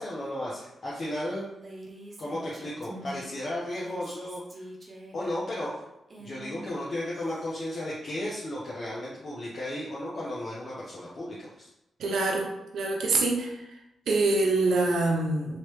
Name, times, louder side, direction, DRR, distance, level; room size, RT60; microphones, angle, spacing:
voice 1, 0.0-1.5 2.2-4.6 5.1-5.8 6.2-11.7, left 1 dB, 55° left, -7 dB, 0.8 m, -34 dB
Female speech woman speaking, 1.5-3.3 3.7-7.5, right 1 dB, 45° right, 0.9 m, -47 dB
voice 2, 12.0-13.8 14.1-15.6, right 3 dB, 75° right, 0 dB, 0.7 m, -26 dB
3.0 x 3.0 x 3.1 m, 0.89 s
supercardioid pair, 50°, 0 cm